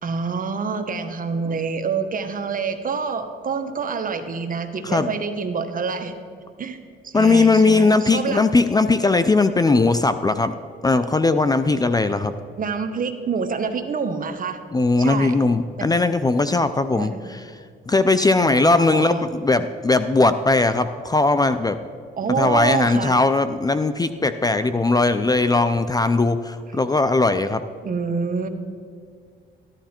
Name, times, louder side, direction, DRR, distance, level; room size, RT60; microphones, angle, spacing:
voice 1, 0.0-6.2 6.6-6.8 7.0-8.4 12.6-14.6 15.0-15.4 15.8-15.9 16.9-17.3 18.4-19.3 22.2-23.2 27.8-28.5, right 5 dB, 45° right, 7 dB, 1.2 m, -27 dB
voice 2, 7.1-10.6 10.8-12.3 14.7-17.4 17.9-21.8 22.4-27.6, left 3 dB, 20° left, 11 dB, 0.5 m, -19 dB
14.0 x 11.5 x 4.4 m, 2.2 s
cardioid pair, 90°, 20 cm